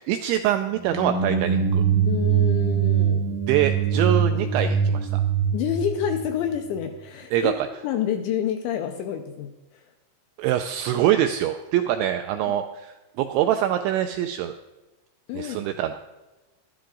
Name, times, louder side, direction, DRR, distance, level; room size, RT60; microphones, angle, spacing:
voice 1, 0.0-1.8 3.5-5.2 7.3-7.7 10.4-14.5 15.3-16.0, right 11 dB, 85° right, 6 dB, 2.6 m, -24 dB
sound 1, 0.8-6.8, right 7 dB, 10° right, 0.8 m, -23 dB
voice 2, 2.0-3.3 5.5-7.5 7.8-9.8 12.5-12.6 15.3-15.6, left 9 dB, 80° left, 5 dB, 2.7 m, -28 dB
12.5 x 12.0 x 3.8 m, 1.1 s
omnidirectional pair, 5.8 m